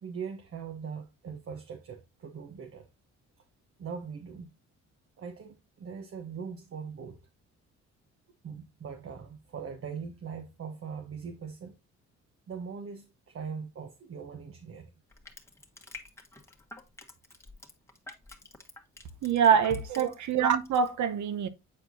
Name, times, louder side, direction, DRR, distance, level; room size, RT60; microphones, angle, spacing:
voice 1, 0.0-2.9 3.8-4.5 5.2-7.2 8.4-11.7 12.5-14.9 19.9-20.1, right 6 dB, 45° right, 1.0 m, -40 dB
Crushing, 15.1-20.4 20.6-20.9, left 3 dB, 10° left, 1.3 m, -48 dB
voice 2, 19.2-21.5, right 7 dB, 70° right, 0.9 m, -25 dB
8.5 x 4.5 x 2.6 m
cardioid pair, 90°, 30 cm